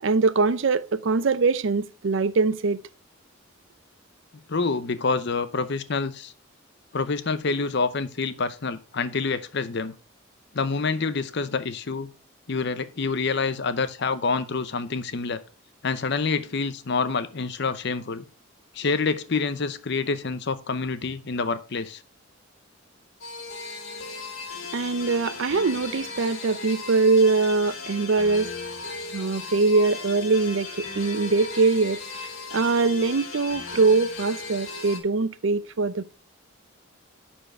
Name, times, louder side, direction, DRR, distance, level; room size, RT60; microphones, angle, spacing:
voice 1, 0.0-2.8 24.7-28.5 29.1-36.1, right 4 dB, 65° right, 0.5 m, -23 dB
voice 2, 4.5-6.3 6.9-9.9 10.5-12.1 12.5-15.4 15.8-18.2 18.7-22.0, left 4 dB, 55° left, 0.7 m, -27 dB
sound 1, 23.2-35.0, left 4 dB, 90° left, 1.9 m, -37 dB
10.0 x 4.4 x 4.4 m
head